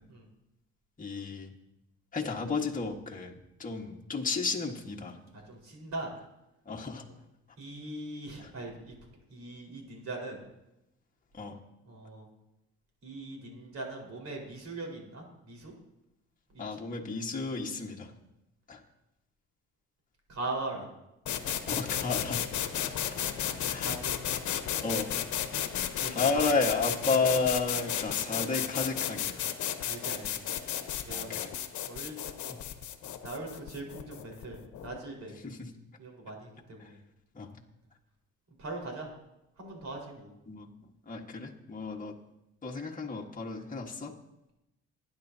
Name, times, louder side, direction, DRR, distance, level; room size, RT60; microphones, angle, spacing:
voice 1, 1.0-1.5 2.1-3.3 3.6-5.2 6.6-7.0 8.4-8.5 11.3-11.6 16.6-18.1 18.7-18.8 21.7-22.4 23.7-23.9 24.8-25.1 26.1-29.4 31.1-31.5 35.4-35.7 36.8-36.9 37.3-37.6 40.5-40.7 41.1-42.1 42.6-44.1, left 4 dB, 25° left, -1 dB, 1.5 m, -32 dB
voice 2, 5.5-6.1 7.6-8.9 9.3-10.4 11.8-12.3 13.0-15.7 16.5-16.8 20.3-20.9 23.1-23.3 23.8-24.2 26.0-26.6 29.8-30.4 31.0-31.3 31.9-32.6 33.2-35.3 36.0-37.0 38.6-39.1 39.6-40.3 41.9-42.0, right 2 dB, 60° right, 0 dB, 4.5 m, -41 dB
sound 1, 21.3-35.0, left 10 dB, 75° left, 1.0 m, -33 dB
20.5 x 9.9 x 2.8 m, 0.90 s
cardioid pair, 90°, 30 cm